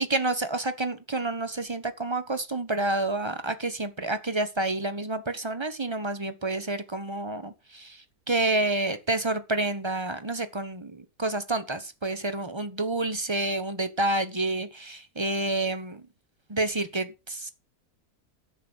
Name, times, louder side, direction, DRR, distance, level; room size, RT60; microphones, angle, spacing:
voice 1, 0.0-16.1 16.5-17.5, right 2 dB, 20° right, 1.1 m, -29 dB
10.5 x 8.0 x 6.4 m
omnidirectional pair, 1.6 m